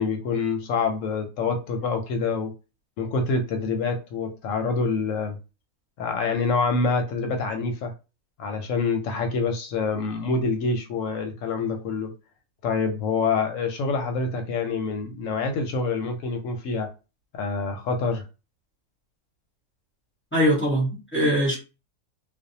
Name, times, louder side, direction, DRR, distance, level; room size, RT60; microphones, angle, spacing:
voice 1, 0.0-2.5 3.0-5.4 6.0-7.9 8.4-12.1 12.6-16.9 17.3-18.2, left 4 dB, 70° left, 0.8 m, -26 dB
voice 2, 20.3-21.6, equal, 10° left, 0.6 m, -22 dB
2.5 x 2.1 x 2.7 m
omnidirectional pair, 1.6 m